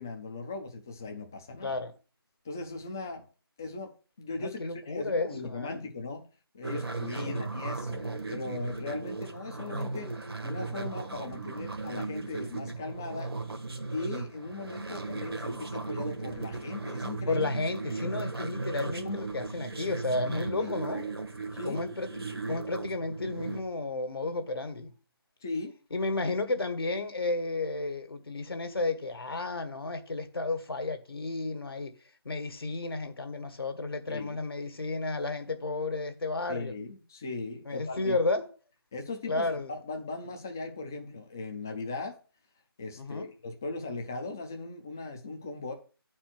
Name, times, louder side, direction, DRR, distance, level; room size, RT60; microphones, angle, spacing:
voice 1, 0.0-1.8 2.4-3.2 3.6-3.9 4.2-6.3 6.5-10.1 10.4-13.3 13.9-17.5 18.0-18.2 19.0-19.2 20.6-20.7 21.5-21.9 25.4-25.7 34.1-34.4 36.5-38.2 38.9-42.2 42.8-45.7, left 3 dB, 10° left, 0.4 m, -38 dB
voice 2, 1.6-1.9 4.4-5.8 7.2-7.4 17.3-21.0 21.6-24.9 25.9-31.9 32.2-36.7 37.6-38.5 39.3-39.7 43.0-43.3, left 2 dB, 70° left, 1.5 m, -32 dB
sound 1, 6.6-23.6, right 3 dB, 80° right, 1.6 m, -36 dB
8.7 x 4.4 x 6.0 m
figure-of-eight pair, 170°, 13 cm